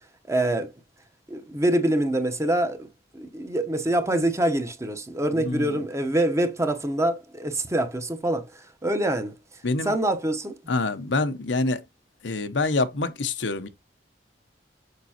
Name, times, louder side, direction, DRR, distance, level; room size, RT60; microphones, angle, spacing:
voice 1, 0.3-0.7 1.3-2.9 3.1-8.5 8.8-9.3 9.8-10.6, right 1 dB, 15° right, 0.9 m, -25 dB
voice 2, 5.3-5.9 9.6-10.0 10.7-11.8 12.2-13.7, left 3 dB, 90° left, 0.8 m, -26 dB
6.7 x 5.4 x 2.8 m
head